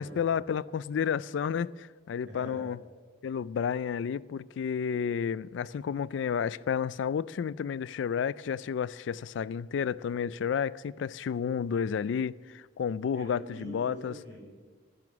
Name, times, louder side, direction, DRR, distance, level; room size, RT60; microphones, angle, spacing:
voice 1, 0.0-2.8 3.2-14.1, left 7 dB, 80° left, 0.3 m, -31 dB
voice 2, 2.2-2.6 13.1-14.4, equal, 75° right, 5.0 m, -44 dB
12.5 x 10.5 x 6.0 m
head